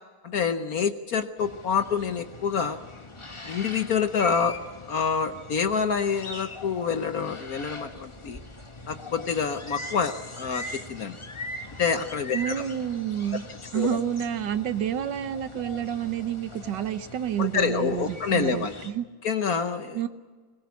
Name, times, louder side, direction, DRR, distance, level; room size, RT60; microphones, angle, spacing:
voice 1, 0.2-2.8 3.4-4.6 4.9-8.4 8.9-11.2 11.8-12.6 13.7-14.0 17.4-18.7 19.2-20.0, left 6 dB, 55° left, 9 dB, 1.2 m, -27 dB
sound 1, 1.4-18.9, left 2 dB, 20° left, 1.2 m, -41 dB
voice 2, 12.3-13.4 13.7-19.0 19.9-20.1, right 10 dB, 65° right, 11 dB, 1.5 m, -29 dB
21.0 x 21.0 x 8.3 m, 1.4 s
omnidirectional pair, 2.2 m